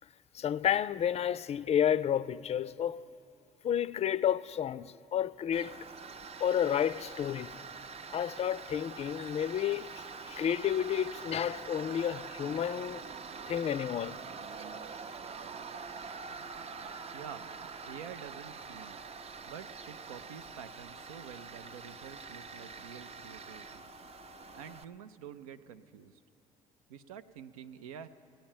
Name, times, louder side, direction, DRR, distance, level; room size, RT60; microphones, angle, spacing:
voice 1, 0.3-3.0 3.6-5.8 6.4-7.6 8.1-13.0 13.5-14.2, left 9 dB, 35° left, 0.4 m, -31 dB
Tools, 5.5-24.8, right 5 dB, 35° right, 0.5 m, -45 dB
voice 2, 17.1-17.5 17.9-19.0 19.4-23.8 24.5-26.2 26.9-28.1, right 8 dB, 90° right, 0.4 m, -48 dB
17.0 x 8.9 x 7.2 m
hypercardioid pair, 55°, 18 cm